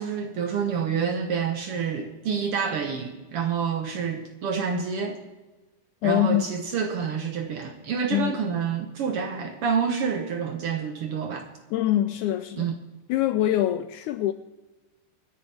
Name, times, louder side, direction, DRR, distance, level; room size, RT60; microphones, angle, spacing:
voice 1, 0.0-5.2 6.0-11.5 12.6-12.7, right 6 dB, 70° right, 1.4 m, -28 dB
voice 2, 6.0-6.5 8.1-8.4 11.7-12.7 13.1-14.3, left 13 dB, 85° left, 1.7 m, -24 dB
25.0 x 9.9 x 3.4 m
omnidirectional pair, 3.9 m